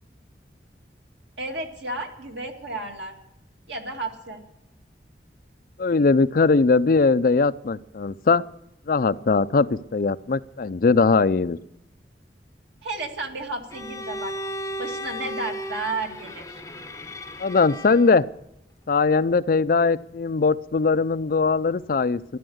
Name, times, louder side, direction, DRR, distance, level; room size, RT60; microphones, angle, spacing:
voice 1, 1.4-3.1 3.7-4.4 12.8-14.3 14.8-16.6, right 2 dB, 90° right, 2 dB, 2.4 m, -32 dB
voice 2, 5.8-8.4 8.9-11.6 17.4-18.2 18.9-22.4, left 4 dB, 50° left, 14 dB, 0.5 m, -20 dB
Bowed string instrument, 13.7-18.2, equal, 15° left, 0.7 m, -35 dB
13.0 x 11.5 x 7.9 m, 0.84 s
head